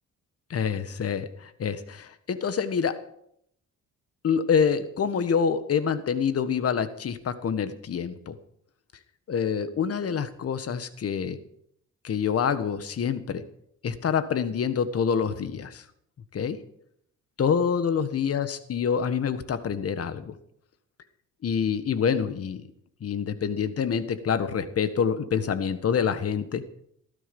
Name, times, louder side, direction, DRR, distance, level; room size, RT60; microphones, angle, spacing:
voice 1, 0.5-3.1 4.2-8.4 9.3-11.4 12.0-13.4 13.8-15.8 16.3-16.6 17.4-20.3 21.4-22.6 23.0-26.6, left 7 dB, 50° left, 12 dB, 1.6 m, -26 dB
17.0 x 14.0 x 5.4 m, 0.70 s
cardioid pair, 90°, 30 cm